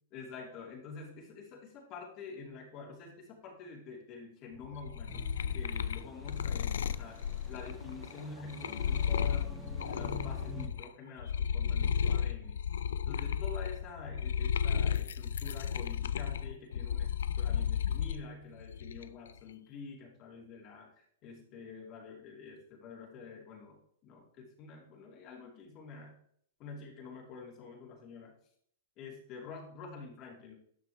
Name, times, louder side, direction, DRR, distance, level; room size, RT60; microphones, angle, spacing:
voice 1, 0.1-5.3 5.5-7.2 7.5-9.5 9.9-12.6 13.1-17.1 17.4-26.2 26.6-28.3 29.0-30.5, left 4 dB, 35° left, -2 dB, 2.9 m, -47 dB
sound 1, 4.6-10.9 11.2-18.2 18.6-19.3, left 8 dB, 85° left, 0.4 m, -33 dB
sound 2, 5.1-10.7, equal, 15° right, 1.2 m, -48 dB
11.0 x 6.2 x 3.1 m, 0.64 s
hypercardioid pair, 140°, 0 cm